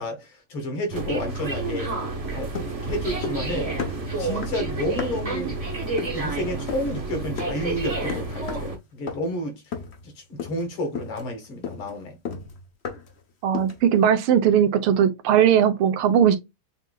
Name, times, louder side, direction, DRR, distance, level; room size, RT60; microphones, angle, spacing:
voice 1, 0.0-1.9 2.3-2.5 2.8-3.7 4.2-5.6 6.1-9.6 10.0-12.2, left 1 dB, 75° left, 2.6 m, -31 dB
sound 1, 0.9-8.8, right 3 dB, 25° right, 0.9 m, -30 dB
sound 2, 1.3-7.3, right 6 dB, 45° right, 1.2 m, -42 dB
sound 3, 2.5-3.5 3.8-5.4 6.0-6.3 6.7-7.0 7.4-7.7 8.1-8.8 9.1-9.4 9.7-10.1 10.4-10.7 10.9-13.2 13.5-13.9, left 6 dB, 50° left, 0.8 m, -35 dB
voice 2, 13.4-16.4, right 9 dB, 80° right, 1.7 m, -19 dB
7.1 x 2.8 x 2.3 m
omnidirectional pair, 2.4 m